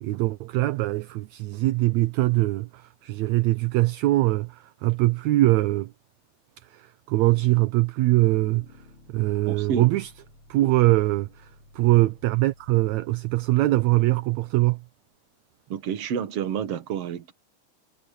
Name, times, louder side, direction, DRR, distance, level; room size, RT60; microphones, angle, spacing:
voice 1, 0.0-5.9 6.6-8.7 9.1-10.1 10.5-14.8, right 18 dB, 75° right, 1.9 m, -22 dB
Bass guitar, 8.3-14.5, left 3 dB, 45° left, 4.4 m, -54 dB
voice 2, 9.5-9.9 15.7-17.3, right 8 dB, 55° right, 2.3 m, -29 dB
omnidirectional pair, 3.5 m